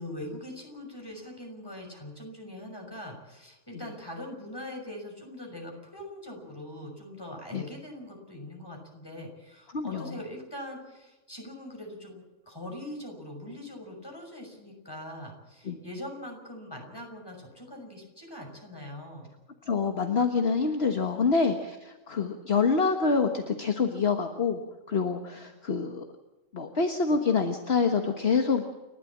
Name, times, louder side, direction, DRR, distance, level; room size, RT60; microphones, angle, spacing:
voice 1, 0.0-19.3 21.1-21.3 25.4-25.5, left 1 dB, 15° left, 2 dB, 6.2 m, -42 dB
voice 2, 9.7-10.0 15.7-15.8 19.7-24.6 24.9-26.0 26.5-28.6, left 5 dB, 50° left, 5 dB, 1.7 m, -26 dB
30.0 x 12.5 x 7.4 m, 1.1 s
omnidirectional pair, 1.3 m